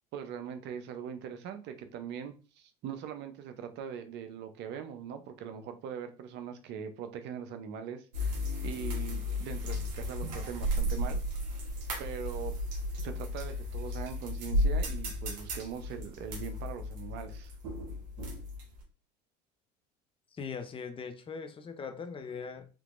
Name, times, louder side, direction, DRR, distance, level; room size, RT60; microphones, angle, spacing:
voice 1, 0.1-11.2 12.0-12.5 13.0-17.5, right 8 dB, 55° right, 8 dB, 0.7 m, -41 dB
sound 1, 8.1-18.8, left 1 dB, 80° right, 1.1 m, -34 dB
voice 2, 20.3-22.7, left 5 dB, 25° left, 7 dB, 0.6 m, -40 dB
3.6 x 2.9 x 2.5 m, 0.33 s
hypercardioid pair, 85°, 21 cm